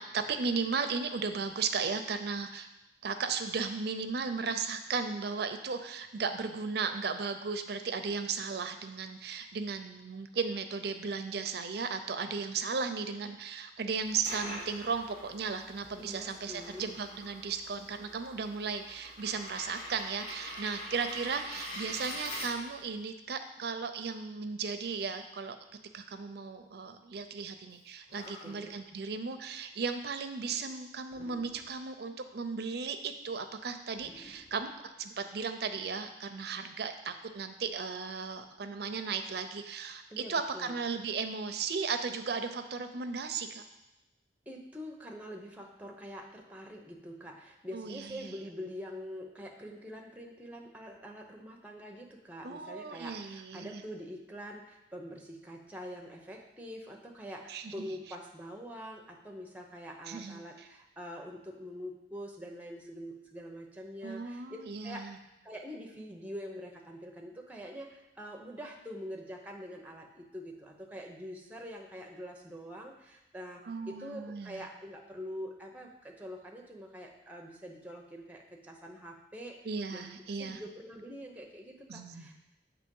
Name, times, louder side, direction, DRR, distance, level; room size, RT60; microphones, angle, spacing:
voice 1, 0.0-2.7 3.0-25.6 25.9-34.7 35.0-40.0 40.3-43.6 47.7-48.4 52.4-53.8 57.5-57.9 60.1-60.7 64.0-65.2 73.7-74.7 79.6-80.6 81.9-82.4, right 5 dB, 65° right, 8 dB, 0.5 m, -36 dB
sound 1, 14.0-22.9, equal, 70° left, 1.8 m, -44 dB
voice 2, 16.0-16.9 28.3-28.8 40.1-40.7 44.5-64.6 64.8-65.1 65.4-82.4, equal, 10° right, 1 dB, 0.7 m, -45 dB
Animal, 27.8-27.9 28.1-28.9 31.1-31.9 33.9-35.3, left 2 dB, 35° left, 0.5 m, -55 dB
7.8 x 2.9 x 5.3 m, 0.97 s
head